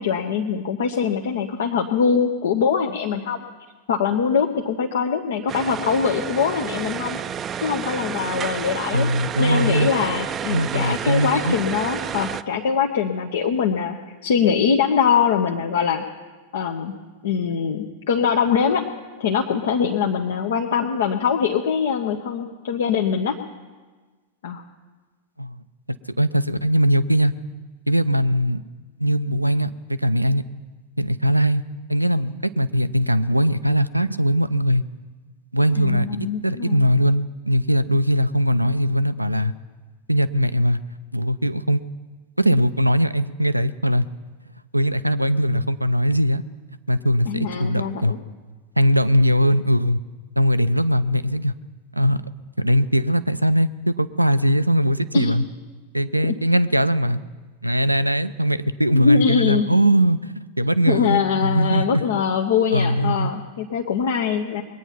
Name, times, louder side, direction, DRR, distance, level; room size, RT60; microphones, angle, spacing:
voice 1, 0.0-3.4 3.9-7.2 7.6-9.1 9.4-14.0 14.2-16.0 16.5-16.9 17.2-18.8 19.2-23.4 24.4-24.6 35.8-36.9 47.3-48.2 55.1-55.3 56.2-56.3 58.9-59.7 60.9-64.6, left 6 dB, 60° left, 2 dB, 0.9 m, -22 dB
sound 1, 5.5-12.4, right 8 dB, 25° right, 0.4 m, -30 dB
voice 2, 8.9-9.9 10.5-11.6 25.4-25.6 26.2-27.3 27.9-28.6 29.0-30.4 31.0-31.6 31.9-34.8 35.5-36.1 36.4-39.5 40.1-40.8 41.1-41.8 42.4-44.1 44.7-46.4 46.9-48.1 48.8-50.0 50.4-51.5 52.0-52.2 52.6-55.4 55.9-57.2 57.6-62.0 62.7-63.3, equal, 85° right, 14 dB, 0.5 m, -20 dB
21.5 x 9.0 x 5.7 m, 1.3 s
figure-of-eight pair, 90°, 0 cm